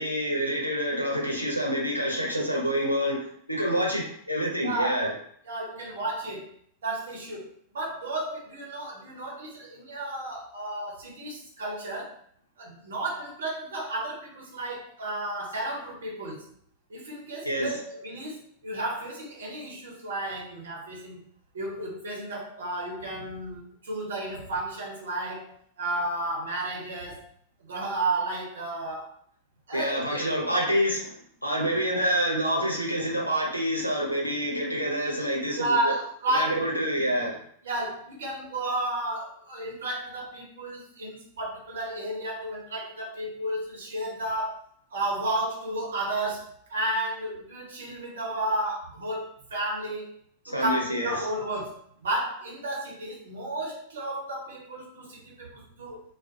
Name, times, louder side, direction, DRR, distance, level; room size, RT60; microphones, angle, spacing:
voice 1, 0.0-5.1 17.4-17.8 29.7-31.1 31.4-35.9 36.3-37.4 50.5-51.3, equal, 90° left, -1 dB, 0.6 m, -27 dB
voice 2, 4.6-5.1 5.5-6.5 6.8-7.5 7.7-12.2 12.6-16.5 16.9-21.2 21.5-25.5 25.8-27.2 27.7-29.1 29.7-30.5 35.6-36.6 37.6-44.6 44.9-50.1 50.5-56.0, right 1 dB, 65° right, -2 dB, 0.8 m, -32 dB
2.4 x 2.1 x 2.6 m, 0.62 s
figure-of-eight pair, 90°, 0 cm